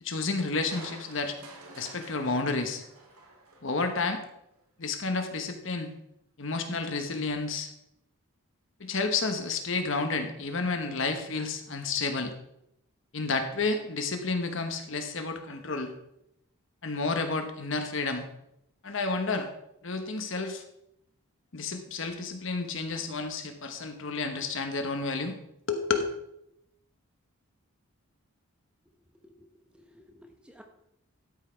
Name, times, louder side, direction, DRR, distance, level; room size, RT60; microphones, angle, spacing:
voice 1, 0.0-1.4 1.7-2.8 3.6-4.2 4.8-5.9 6.4-7.7 8.8-12.3 13.1-15.9 16.8-18.3 18.8-19.5 19.8-20.6 21.5-25.4 25.7-26.1, left 3 dB, 55° left, 6 dB, 1.1 m, -31 dB
Crushing, 0.7-4.1 4.5-4.6, right 2 dB, 85° right, 2.1 m, -49 dB
voice 2, 29.7-30.6, equal, 5° right, 3 dB, 0.8 m, -54 dB
12.5 x 5.7 x 4.5 m, 0.80 s
head